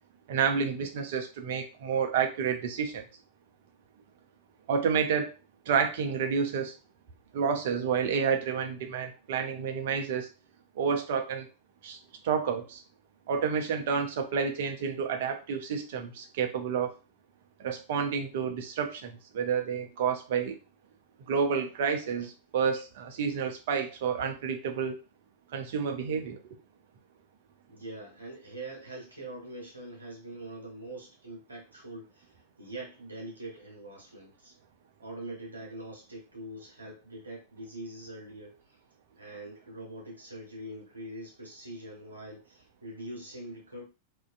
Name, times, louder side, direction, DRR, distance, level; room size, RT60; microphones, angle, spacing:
voice 1, 0.3-3.0 4.7-5.3 5.7-6.7 7.3-10.3 10.8-11.5 11.8-12.0 12.2-12.8 13.3-16.9 17.6-20.6 21.3-24.9 25.5-26.6, right 6 dB, 55° right, 5 dB, 0.4 m, -29 dB
voice 2, 27.7-34.5 35.0-38.8 39.2-43.8, right 1 dB, 80° right, -1 dB, 0.8 m, -43 dB
2.4 x 2.1 x 2.4 m, 0.31 s
figure-of-eight pair, 90°, 0 cm